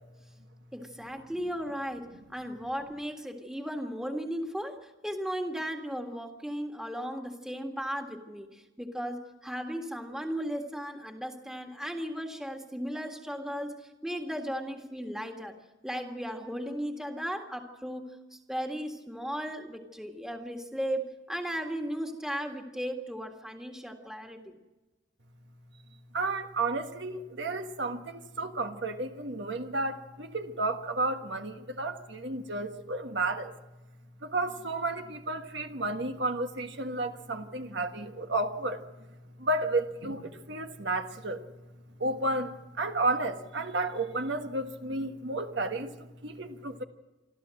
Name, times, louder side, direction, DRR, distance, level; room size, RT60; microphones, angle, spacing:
voice 1, 0.7-15.5 15.8-24.6, equal, 5° right, 3 dB, 1.8 m, -36 dB
voice 2, 26.1-33.5 34.2-38.8 39.4-41.4 42.0-46.8, right 2 dB, 65° right, 6 dB, 1.4 m, -32 dB
26.0 x 13.5 x 7.7 m, 1.1 s
head